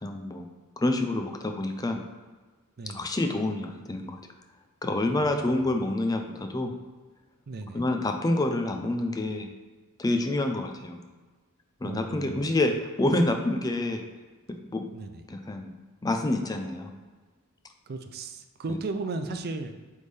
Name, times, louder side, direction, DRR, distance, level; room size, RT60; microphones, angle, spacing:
voice 1, 0.0-0.5 0.8-2.0 2.9-4.2 4.8-6.8 7.7-9.5 10.0-11.0 11.8-14.0 14.5-14.9 15.3-16.9, left 2 dB, 15° left, 4 dB, 0.4 m, -27 dB
voice 2, 2.8-3.1 5.2-5.7 7.5-7.9 11.8-12.5 14.9-15.2 17.9-19.8, right 3 dB, 45° right, 8 dB, 0.4 m, -36 dB
8.2 x 3.5 x 3.3 m, 1.3 s
head